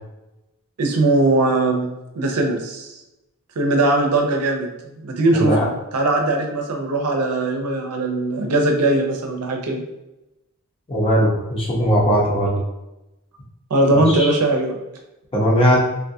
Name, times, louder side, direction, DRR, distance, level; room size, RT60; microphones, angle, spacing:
voice 1, 0.8-2.9 3.6-9.8 13.7-14.8, right 2 dB, 85° right, 3 dB, 0.6 m, -20 dB
voice 2, 5.3-5.7 10.9-12.6 13.9-14.3 15.3-15.8, equal, 25° left, -4 dB, 0.9 m, -19 dB
3.6 x 2.3 x 2.6 m, 0.94 s
head